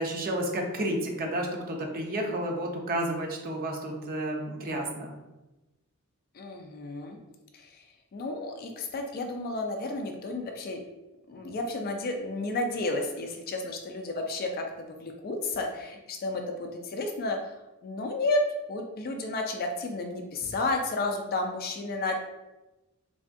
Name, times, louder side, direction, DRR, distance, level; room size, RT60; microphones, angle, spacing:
voice 1, 0.0-5.1, right 1 dB, 40° right, 1 dB, 0.5 m, -31 dB
voice 2, 6.3-7.2 7.5-7.8 8.1-10.8 11.3-17.4 17.8-18.4 18.7-22.2, left 2 dB, 45° left, 4 dB, 0.3 m, -32 dB
3.3 x 2.2 x 2.5 m, 1.0 s
head